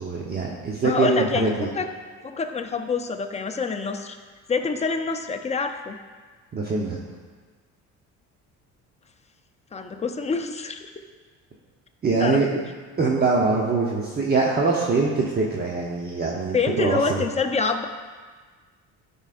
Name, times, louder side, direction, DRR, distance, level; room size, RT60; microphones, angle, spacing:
voice 1, 0.0-1.7 6.5-7.0 12.0-12.6 13.0-17.2, right 4 dB, 30° right, -2 dB, 0.9 m, -23 dB
voice 2, 0.8-1.9 2.2-4.2 4.5-6.0 9.7-10.8 12.2-12.7 16.5-17.9, left 4 dB, 20° left, 6 dB, 0.6 m, -26 dB
12.5 x 5.5 x 2.5 m, 1.5 s
cardioid pair, 110°, 31 cm